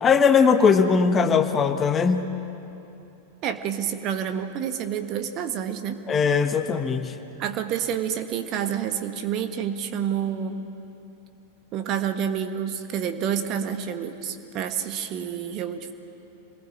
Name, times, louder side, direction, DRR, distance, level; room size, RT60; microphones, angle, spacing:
voice 1, 0.0-2.3 6.1-7.1, left 6 dB, 20° left, 8 dB, 1.2 m, -20 dB
voice 2, 3.4-6.0 7.4-10.7 11.7-15.9, right 8 dB, 35° right, 8 dB, 1.5 m, -28 dB
26.5 x 20.0 x 8.8 m, 2.8 s
figure-of-eight pair, 90°, 0 cm